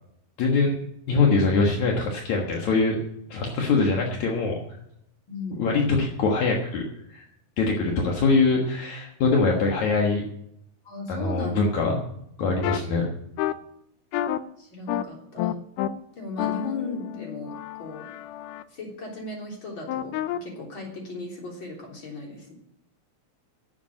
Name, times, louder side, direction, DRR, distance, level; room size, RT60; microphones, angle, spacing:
voice 1, 0.4-3.0 3.3-4.6 5.6-6.8 7.1-7.3 7.6-10.3 11.1-12.0 12.4-13.1, left 3 dB, 70° left, 0 dB, 2.8 m, -23 dB
voice 2, 5.3-5.7 10.8-11.6 14.6-15.5 16.1-18.1 18.7-22.5, left 2 dB, 40° left, -1 dB, 4.2 m, -37 dB
sound 1, 12.6-12.8 13.4-13.5 14.1-14.4 14.9-15.0 15.4-15.9 16.4-18.6 19.9-20.4, left 12 dB, 90° left, 2.2 m, -29 dB
11.5 x 8.3 x 8.7 m, 0.76 s
omnidirectional pair, 3.5 m